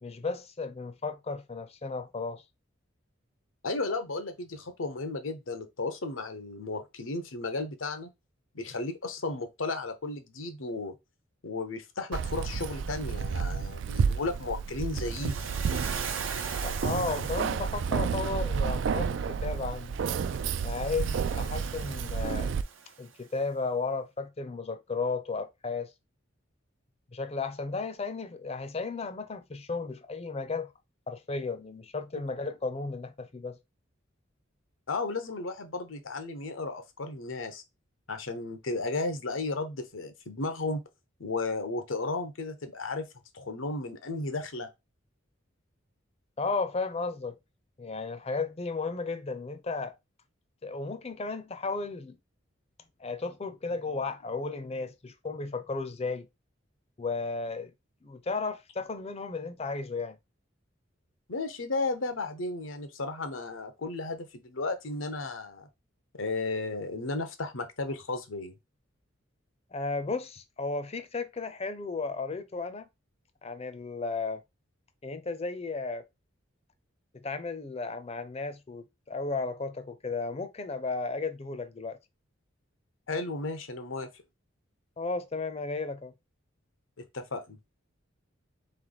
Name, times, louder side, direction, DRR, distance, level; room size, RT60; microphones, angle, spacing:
voice 1, 0.0-2.4 16.6-20.0 20.6-22.5 23.0-25.9 27.1-30.7 31.1-33.6 46.4-47.4 47.8-50.0 50.6-52.2 53.0-56.3 57.0-57.7 58.0-60.2 69.7-72.9 73.4-74.4 75.0-76.0 77.1-82.0 85.0-86.1, left 3 dB, 30° left, 0.6 m, -34 dB
voice 2, 3.6-8.1 8.5-11.0 11.4-15.5 34.9-37.6 38.1-40.8 41.2-43.1 43.3-44.7 61.3-65.7 66.1-68.5 83.1-84.1 87.1-87.6, left 3 dB, 85° left, 0.9 m, -34 dB
Keys jangling, 12.1-22.6, right 6 dB, 65° right, 0.3 m, -31 dB
Waves surf, 15.0-18.2 20.0-23.1, right 6 dB, 85° right, 0.8 m, -40 dB
3.7 x 3.3 x 3.9 m
head